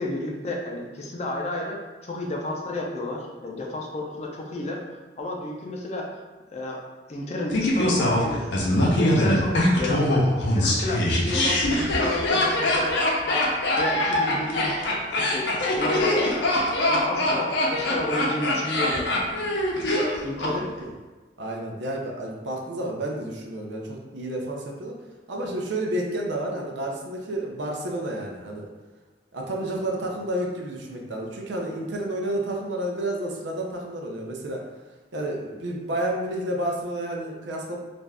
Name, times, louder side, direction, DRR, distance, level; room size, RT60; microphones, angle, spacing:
voice 1, 0.0-4.8 5.2-6.1 6.5-6.8 7.1-8.7 9.0-13.0 13.3-13.5 13.8-16.4 16.9-19.1 20.2-20.7, left 2 dB, 40° left, 0 dB, 0.4 m, -31 dB
Laughter, 7.5-20.5 20.8-20.9, left 1 dB, 85° left, 0.6 m, -23 dB
voice 2, 21.4-25.0 25.3-28.7 29.3-34.6 35.1-37.8, right 1 dB, 85° right, 0 dB, 0.5 m, -30 dB
2.5 x 2.3 x 3.3 m, 1.2 s
head